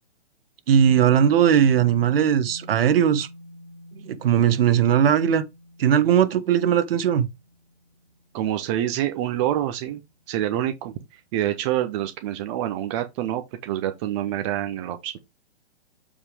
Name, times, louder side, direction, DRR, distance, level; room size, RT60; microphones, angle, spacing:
voice 1, 0.7-3.3 3.9-5.4 5.8-7.3, right 9 dB, 55° right, 1.3 m, -19 dB
sound 1, 0.9-9.3, left 1 dB, 10° right, 4.1 m, -44 dB
voice 2, 8.3-10.0 10.3-15.2, right 12 dB, 30° right, 0.6 m, -27 dB
7.3 x 5.1 x 3.3 m
hypercardioid pair, 140°, 34 cm